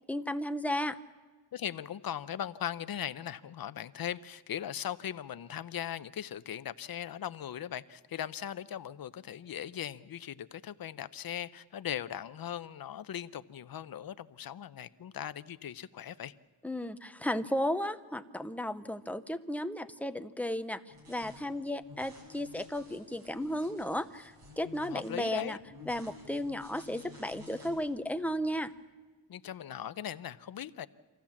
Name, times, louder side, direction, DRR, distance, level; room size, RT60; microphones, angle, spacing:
voice 1, 0.1-1.0 16.6-20.8 21.1-25.6 25.9-28.7, left 1 dB, 5° left, 10 dB, 0.6 m, -34 dB
voice 2, 1.5-16.3 24.6-25.6 29.3-30.9, left 10 dB, 50° left, 14 dB, 0.7 m, -39 dB
sound 1, 20.9-28.7, left 3 dB, 65° right, 5.7 m, -54 dB
25.0 x 15.5 x 7.2 m, 1.4 s
wide cardioid pair, 135°, 45 cm